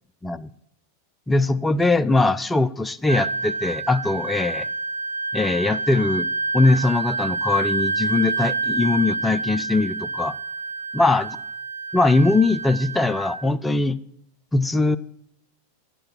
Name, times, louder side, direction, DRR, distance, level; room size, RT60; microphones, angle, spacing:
voice 1, 1.3-4.7 5.3-6.3 6.5-10.4 10.9-11.3 11.9-14.0 14.5-15.0, left 2 dB, 10° left, 0.4 m, -21 dB
Wind instrument woodwind instrument, 3.1-13.4, right 3 dB, 75° right, 0.6 m, -28 dB
10.0 x 7.6 x 4.4 m
figure-of-eight pair, 90°, 0 cm